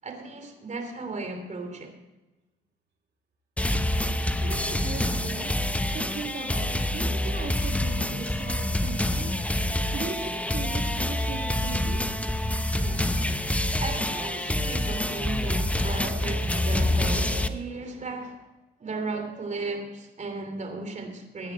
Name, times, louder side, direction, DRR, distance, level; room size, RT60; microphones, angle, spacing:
voice 1, 0.0-1.9 12.8-13.3 13.8-18.5 18.8-21.5, right 3 dB, 35° right, 5 dB, 3.0 m, -35 dB
sound 1, 3.6-17.5, left 1 dB, 5° left, 0.8 m, -27 dB
voice 2, 4.4-5.5 5.9-9.6 9.9-12.1, right 5 dB, 60° right, 0 dB, 2.4 m, -38 dB
16.5 x 9.8 x 4.4 m, 1.1 s
cardioid pair, 90°, 20 cm